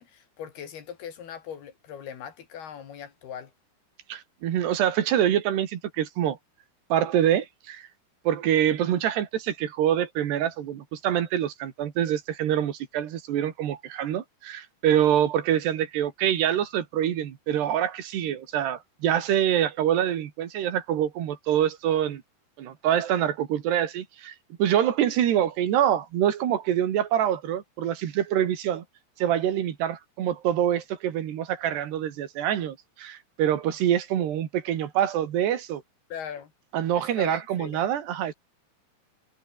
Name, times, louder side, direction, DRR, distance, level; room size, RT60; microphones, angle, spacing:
voice 1, 0.0-3.5 36.1-36.5 37.0-37.8, left 8 dB, 65° left, 4.9 m, -40 dB
voice 2, 4.1-6.4 6.9-7.9 8.3-22.2 22.6-24.3 24.6-28.8 29.2-35.8 36.7-38.3, right 10 dB, 75° right, 4.2 m, -25 dB
omnidirectional pair, 4.9 m